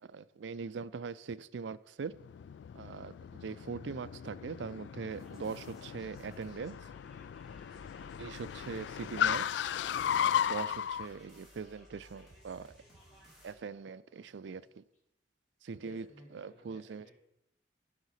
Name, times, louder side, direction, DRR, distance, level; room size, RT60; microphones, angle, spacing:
voice 1, 0.0-2.1 2.7-3.1 3.4-6.8 8.0-9.6 10.2-12.8 13.4-14.8 15.6-16.0 16.3-17.1, right 5 dB, 85° right, 0.4 m, -41 dB
Car, 2.1-11.1, left 9 dB, 75° left, 0.3 m, -36 dB
sound 1, 5.1-13.5, equal, ahead, 3.9 m, -59 dB
voice 2, 13.1-13.4 14.5-14.7 15.7-17.1, left 1 dB, 45° left, 2.7 m, -58 dB
11.0 x 5.8 x 5.7 m
head